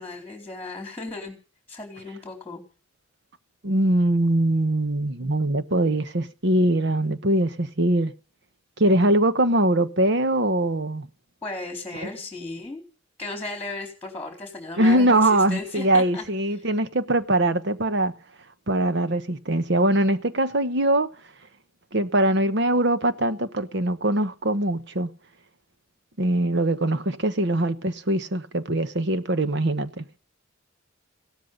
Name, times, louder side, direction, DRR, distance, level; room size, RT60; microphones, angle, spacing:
voice 1, 0.0-1.4 1.7-2.6 11.4-12.8 13.2-16.3, left 2 dB, 10° left, 4.1 m, -35 dB
voice 2, 3.6-8.1 8.8-11.1 14.8-18.1 18.7-21.1 21.9-25.1 26.2-30.2, right 1 dB, 60° right, 1.2 m, -22 dB
16.5 x 13.0 x 5.5 m
head